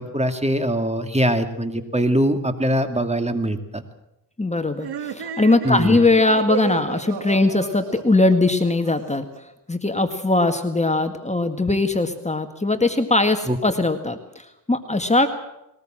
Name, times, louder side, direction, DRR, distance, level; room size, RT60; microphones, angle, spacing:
voice 1, 0.0-3.8 5.6-6.0 13.5-13.6, equal, 15° right, 8 dB, 2.5 m, -22 dB
voice 2, 4.4-9.3 9.7-15.3, left 2 dB, 15° left, 7 dB, 1.8 m, -20 dB
sound 1, 4.8-9.4, right 6 dB, 80° right, 2.3 m, -32 dB
21.0 x 19.5 x 7.6 m, 0.85 s
cardioid pair, 75°, 39 cm